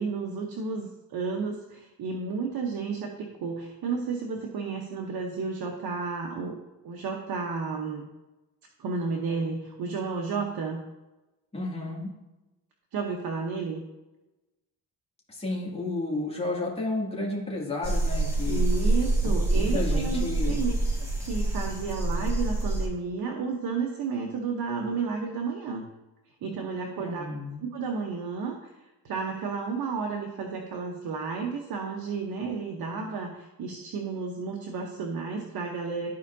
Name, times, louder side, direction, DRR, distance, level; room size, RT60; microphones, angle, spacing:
voice 1, 0.0-6.6 6.8-8.1 8.8-10.8 12.9-13.8 18.4-20.7 21.0-25.9 26.4-27.2 27.6-28.7 29.0-36.2, right 4 dB, 75° right, 1 dB, 1.0 m, -32 dB
voice 2, 11.5-12.1 15.3-18.7 19.2-20.6 27.0-27.6, left 2 dB, 15° left, -4 dB, 2.3 m, -32 dB
sound 1, 17.8-22.9, right 2 dB, 10° right, 2.0 m, -26 dB
13.5 x 4.7 x 2.7 m, 1.0 s
cardioid pair, 100°, 36 cm